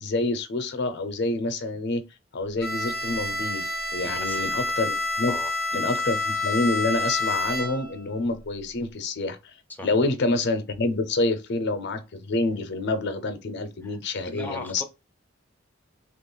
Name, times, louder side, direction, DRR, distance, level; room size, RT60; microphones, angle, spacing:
voice 1, 0.0-2.0 2.3-5.3 5.7-9.4 9.8-14.8, left 2 dB, 60° left, 0.6 m, -27 dB
Bowed string instrument, 2.6-8.0, left 2 dB, 55° right, 1.2 m, -28 dB
voice 2, 4.0-4.5 5.3-5.5 9.7-9.9 14.3-14.8, left 2 dB, 10° left, 0.5 m, -37 dB
3.0 x 2.4 x 3.8 m
head